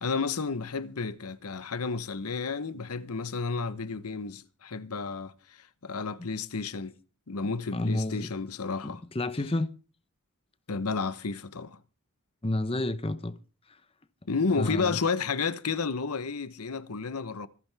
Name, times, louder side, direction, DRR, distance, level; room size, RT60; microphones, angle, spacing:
voice 1, 0.0-7.0 7.3-9.0 10.7-11.8 14.3-17.5, left 4 dB, 90° left, 0.9 m, -31 dB
voice 2, 7.7-8.3 8.8-9.7 12.4-13.4 14.5-14.9, left 2 dB, 25° left, 0.8 m, -30 dB
25.0 x 10.0 x 3.4 m
head